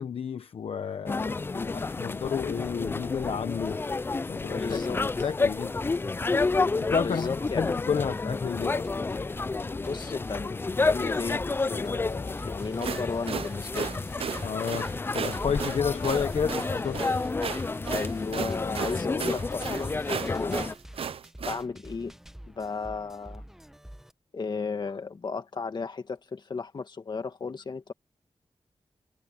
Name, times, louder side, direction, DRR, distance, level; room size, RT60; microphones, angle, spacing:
voice 1, 0.0-3.8 4.3-4.8 5.2-5.7 6.9-8.9 14.4-17.2, left 7 dB, 80° left, 1.0 m, -31 dB
sound 1, 1.1-20.7, left 3 dB, 25° left, 0.3 m, -30 dB
voice 2, 4.5-5.0 7.0-7.7 9.8-11.4 11.7-13.9 17.9-20.6 21.4-22.1 22.5-23.4 24.3-27.9, left 4 dB, 50° left, 2.2 m, -34 dB
sound 2, 8.6-24.1, equal, 5° right, 1.0 m, -48 dB
sound 3, 12.6-21.6, right 7 dB, 75° right, 0.5 m, -35 dB
wide cardioid pair, 160°, 10 cm